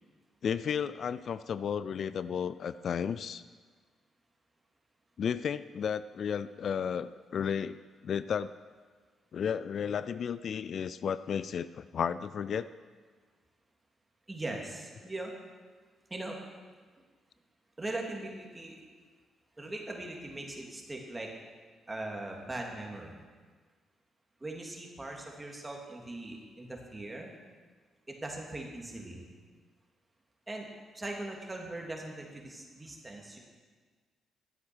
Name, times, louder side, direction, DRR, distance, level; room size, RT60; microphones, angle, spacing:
voice 1, 0.4-3.4 5.2-7.8 8.0-8.5 9.3-12.7, left 7 dB, 60° left, 15 dB, 0.3 m, -33 dB
voice 2, 14.3-15.3 16.1-16.4 17.8-18.8 19.6-21.3 21.9-23.1 24.4-27.3 28.1-29.3 30.5-30.7 30.9-33.4, right 2 dB, 20° right, 0 dB, 2.8 m, -40 dB
12.0 x 7.9 x 6.3 m, 1.5 s
supercardioid pair, 55°, 0 cm